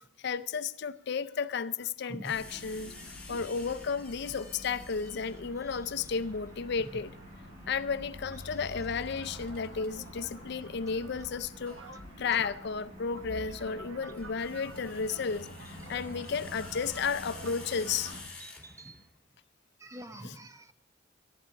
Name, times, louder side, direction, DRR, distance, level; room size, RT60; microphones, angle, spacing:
voice 1, 0.2-2.9 3.3-7.1 7.7-11.8 12.2-18.1 20.2-20.3, left 5 dB, 55° left, 0.5 m, -33 dB
sound 1, 2.2-5.6 8.4-9.9 11.7-11.9 14.0-19.1, left 3 dB, 5° left, 2.3 m, -50 dB
sound 2, 2.3-18.2, left 1 dB, 40° right, 6.6 m, -47 dB
sound 3, 9.1-18.2, right 4 dB, 80° right, 1.0 m, -52 dB
voice 2, 18.4-19.1 19.8-20.7, right 1 dB, 15° right, 0.6 m, -46 dB
13.5 x 11.5 x 4.7 m
head